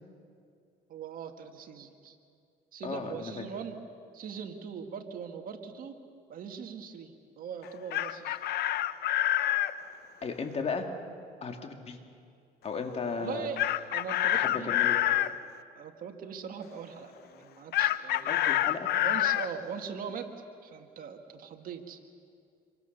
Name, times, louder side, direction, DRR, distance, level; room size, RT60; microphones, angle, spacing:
voice 1, 0.9-2.2 2.7-3.8 4.1-6.0 6.3-8.4 13.2-13.6 13.9-15.4 15.8-18.6 19.0-20.3 20.6-22.0, right 7 dB, 55° right, 5 dB, 2.1 m, -41 dB
voice 2, 2.8-3.4 10.2-10.9 11.4-12.0 12.6-13.5 14.3-15.0 18.3-18.9, left 5 dB, 40° left, 4 dB, 2.7 m, -35 dB
Chicken rooster, 7.7-9.7 13.6-15.3 17.7-19.5, left 13 dB, 70° left, 0.8 m, -27 dB
27.0 x 24.0 x 6.9 m, 2.3 s
cardioid pair, 110°, 17 cm